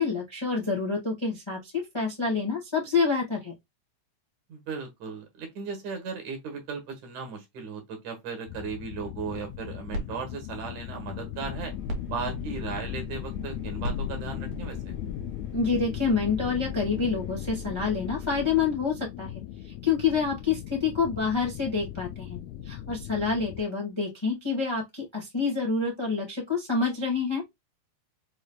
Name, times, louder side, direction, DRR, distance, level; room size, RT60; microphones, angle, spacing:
voice 1, 0.0-3.5 15.5-22.4 22.6-27.6, left 5 dB, 35° left, 0.4 m, -27 dB
voice 2, 4.5-11.7 12.1-15.0, right 5 dB, 70° right, 2.8 m, -36 dB
sound 1, 8.5-23.6, left 12 dB, 80° left, 1.7 m, -38 dB
sound 2, 9.4-15.8, right 1 dB, 85° right, 2.9 m, -41 dB
Engine, 11.4-18.7, equal, 40° right, 1.3 m, -44 dB
6.2 x 3.1 x 2.3 m
omnidirectional pair, 3.6 m